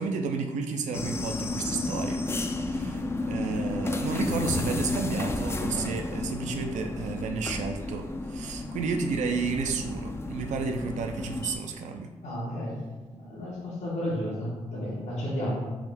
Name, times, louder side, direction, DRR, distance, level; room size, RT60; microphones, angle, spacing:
voice 1, 0.0-2.2 2.6-12.1, right 4 dB, 70° right, 4 dB, 0.4 m, -32 dB
sound 1, 0.9-11.6, left 2 dB, 20° left, 0.3 m, -32 dB
voice 2, 12.2-15.6, equal, 70° left, -6 dB, 1.0 m, -32 dB
3.5 x 2.1 x 3.4 m, 1.3 s
supercardioid pair, 55°, 13 cm